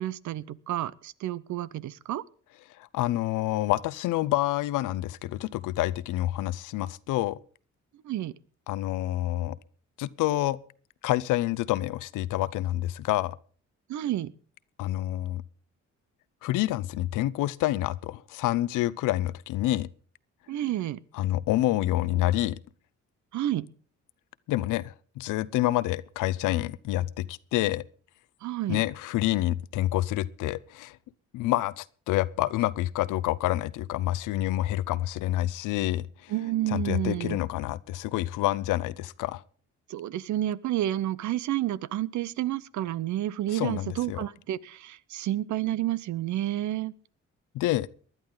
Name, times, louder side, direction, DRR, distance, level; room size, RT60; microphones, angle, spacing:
voice 1, 0.0-2.2 8.0-8.3 13.9-14.3 20.5-21.0 23.3-23.7 28.4-28.8 36.3-37.4 39.9-46.9, right 13 dB, 70° right, 0.7 m, -30 dB
voice 2, 2.8-7.4 8.7-9.6 10.0-10.6 11.0-13.4 14.8-15.4 16.4-19.9 21.1-22.6 24.5-27.8 28.7-31.0 31.3-36.3 36.7-39.4 43.5-44.2 47.5-47.9, left 15 dB, 90° left, 0.6 m, -28 dB
19.5 x 11.5 x 3.9 m
cardioid pair, 90°, 30 cm